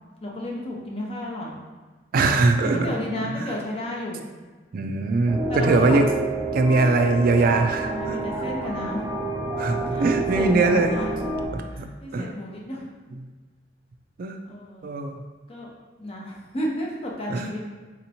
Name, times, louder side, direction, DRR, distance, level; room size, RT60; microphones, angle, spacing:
voice 1, 0.2-1.6 2.6-4.2 5.5-6.0 7.4-9.0 9.9-11.1 11.7-12.9 14.5-14.9 15.5-15.7 16.0-17.7, left 1 dB, 35° left, -2 dB, 0.7 m, -32 dB
voice 2, 2.1-2.8 3.4-3.5 4.7-6.1 6.5-8.2 9.6-10.9 11.5-11.9 12.1-12.3 14.2-14.4 14.8-15.2 17.3-17.5, right 3 dB, 50° right, 6 dB, 0.3 m, -21 dB
sound 1, 5.3-11.5, right 2 dB, 10° right, 0.9 m, -29 dB
4.2 x 2.9 x 2.7 m, 1.3 s
head